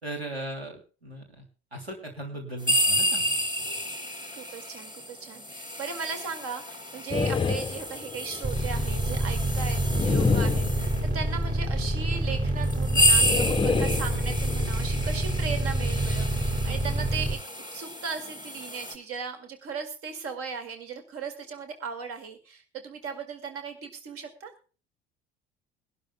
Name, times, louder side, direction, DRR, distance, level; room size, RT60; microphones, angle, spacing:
voice 1, 0.0-1.4 1.7-3.4, right 1 dB, 85° right, 3 dB, 2.8 m, -38 dB
sound 1, 2.6-11.1 11.8-11.9 12.6-19.0, equal, 15° right, 2.5 m, -30 dB
voice 2, 4.4-17.4 17.7-24.5, right 5 dB, 50° right, 7 dB, 2.2 m, -37 dB
sound 2, 7.1-8.5 9.9-11.4 13.2-14.7, left 5 dB, 15° left, 0.6 m, -28 dB
sound 3, 8.4-17.3, right 1 dB, 30° right, 6.3 m, -27 dB
23.0 x 12.0 x 2.2 m, 0.37 s
figure-of-eight pair, 60°, 30 cm